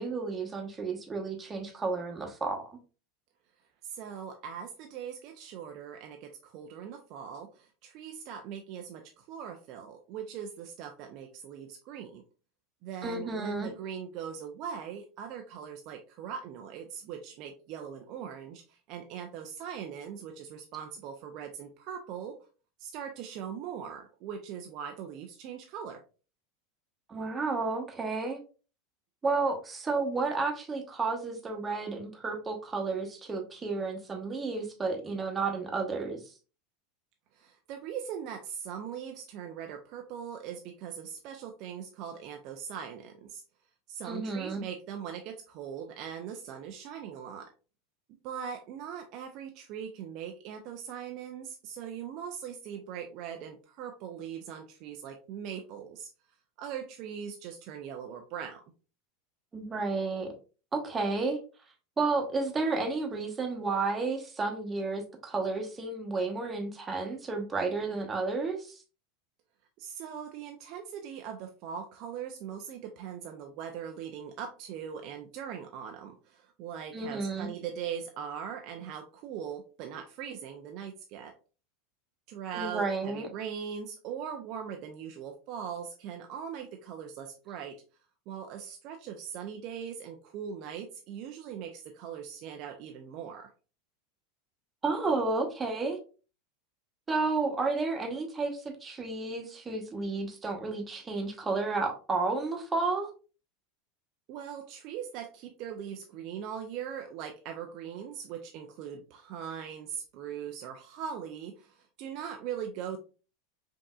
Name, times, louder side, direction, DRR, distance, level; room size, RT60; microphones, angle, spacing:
voice 1, 0.0-2.8 13.0-13.7 27.1-28.4 29.2-36.2 44.0-44.6 59.5-60.3 60.7-61.4 62.0-68.7 76.9-77.5 82.5-83.3 94.8-96.0 97.1-103.1, right 3 dB, 20° right, 1.0 m, -31 dB
voice 2, 3.8-12.2 12.8-22.4 22.8-26.0 37.3-43.4 43.9-47.5 48.2-56.1 56.6-58.6 69.8-81.3 82.3-87.8 88.3-93.5 104.3-113.0, right 8 dB, 50° right, 0.4 m, -40 dB
5.2 x 2.7 x 2.3 m
figure-of-eight pair, 85°, 0 cm